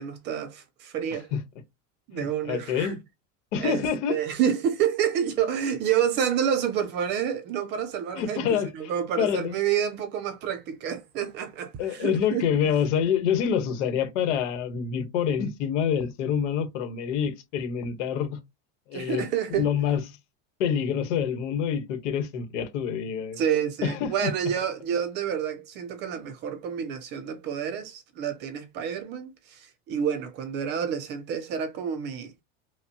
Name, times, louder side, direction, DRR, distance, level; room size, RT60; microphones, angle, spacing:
voice 1, 0.0-1.3 2.1-3.0 3.6-3.8 4.1-8.4 8.7-12.4 18.9-19.7 23.4-32.3, right 8 dB, 30° right, 0.4 m, -28 dB
voice 2, 2.1-3.0 3.5-4.2 8.1-8.9 9.2-9.5 11.8-18.4 18.9-20.0 20.6-23.4 23.8-24.3, left 8 dB, 75° left, 1.1 m, -27 dB
5.2 x 2.1 x 2.7 m
supercardioid pair, 160°, 36 cm